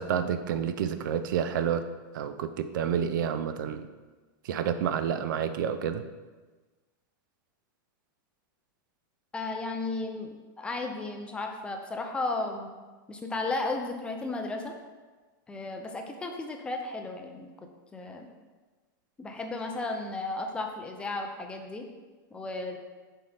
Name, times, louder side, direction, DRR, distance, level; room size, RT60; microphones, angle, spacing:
voice 1, 0.0-1.8 2.1-3.9 4.4-6.0, right 8 dB, 65° right, 10 dB, 0.5 m, -29 dB
voice 2, 9.3-12.7 13.1-14.7 15.5-17.5 17.9-18.3 19.2-21.9 22.3-22.8, left 2 dB, 10° left, 3 dB, 0.4 m, -34 dB
7.7 x 4.1 x 3.4 m, 1.3 s
supercardioid pair, 160°, 11 cm